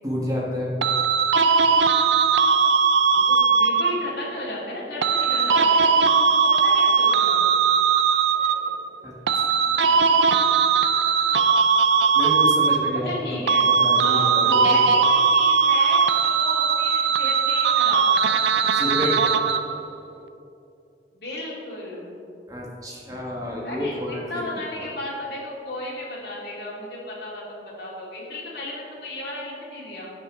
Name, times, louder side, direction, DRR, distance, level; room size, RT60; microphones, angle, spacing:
voice 1, 0.0-0.7 9.0-10.2 12.1-13.2 13.7-14.9 18.7-19.2 22.5-24.4 24.8-24.9, left 1 dB, 20° right, -3 dB, 1.5 m, -30 dB
sound 1, 0.8-4.2 5.0-8.8 9.3-13.2 13.5-19.8, right 5 dB, 85° right, 0.5 m, -19 dB
voice 2, 3.1-5.9 6.3-7.5 13.0-13.6 14.0-18.3 21.2-22.1 23.6-30.1, left 1 dB, 60° left, -4 dB, 2.4 m, -34 dB
15.5 x 6.2 x 3.8 m, 2.7 s
head